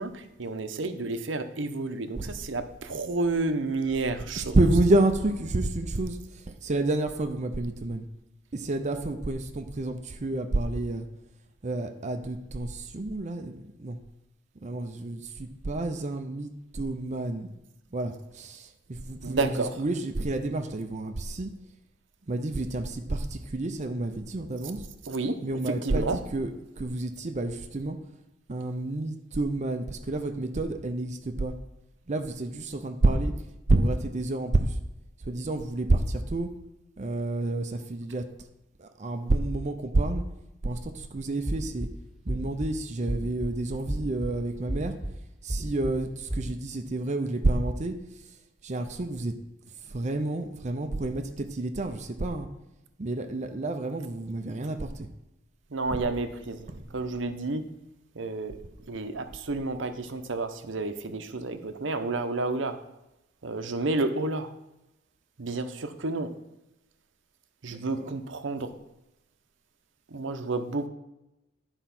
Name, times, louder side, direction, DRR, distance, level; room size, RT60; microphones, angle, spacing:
voice 1, 0.0-4.6 19.2-19.7 25.1-25.4 25.7-26.2 55.7-57.6 58.1-58.6 58.9-62.8 63.4-64.5 65.4-66.3 67.6-68.7 70.1-70.9, right 3 dB, 70° right, 8 dB, 0.8 m, -30 dB
voice 2, 4.4-8.1 8.5-11.1 11.6-14.0 14.6-17.5 17.9-21.5 22.3-24.8 25.4-26.5 26.8-28.0 28.5-31.6 32.1-33.3 33.7-34.8 35.2-36.6 37.0-38.3 38.8-40.3 40.6-41.9 42.2-45.0 45.4-49.4 49.7-52.5 53.0-55.1 55.9-56.0 56.7-56.9 67.7-68.2, right 2 dB, 35° right, 7 dB, 0.6 m, -29 dB
sound 1, 41.4-41.9 42.3-42.7 43.1-43.5 43.9-44.3 44.7-45.1 45.5-45.9 46.3-46.5, right 1 dB, ahead, 1.9 m, -31 dB
10.5 x 4.4 x 5.9 m, 0.93 s
head